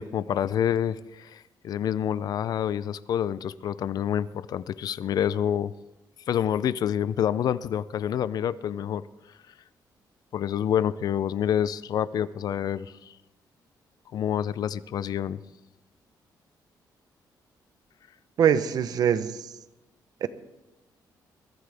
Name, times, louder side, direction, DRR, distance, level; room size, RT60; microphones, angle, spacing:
voice 1, 0.0-5.7 6.3-9.0 10.3-13.1 14.1-15.4, left 9 dB, 60° left, 0.5 m, -27 dB
voice 2, 18.4-19.3 20.2-20.3, right 8 dB, 60° right, 0.8 m, -22 dB
21.5 x 13.0 x 3.4 m
cardioid pair, 140°, 7 cm